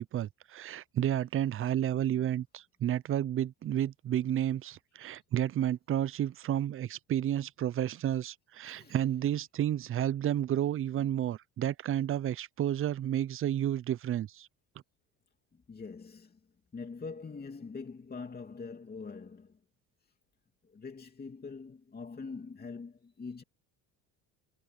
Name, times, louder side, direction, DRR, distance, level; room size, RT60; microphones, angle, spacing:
voice 1, 0.0-14.5, right 11 dB, 35° right, 0.5 m, -31 dB
voice 2, 8.6-9.2 15.5-16.4 16.7-19.6 20.6-23.4, left 4 dB, 25° left, 2.7 m, -44 dB
supercardioid pair, 100°, 39 cm